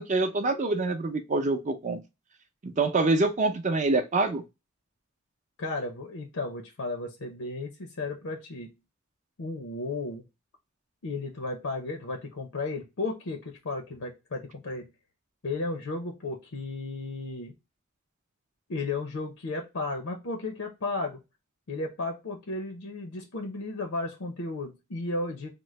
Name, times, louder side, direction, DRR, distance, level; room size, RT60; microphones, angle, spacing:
voice 1, 0.0-2.0 2.6-4.4, right 3 dB, 35° right, 0.5 m, -26 dB
voice 2, 5.6-8.7 9.4-10.3 11.0-14.9 15.4-17.5 18.7-21.2 21.7-25.5, left 3 dB, 80° left, 0.7 m, -34 dB
3.7 x 2.0 x 3.1 m
head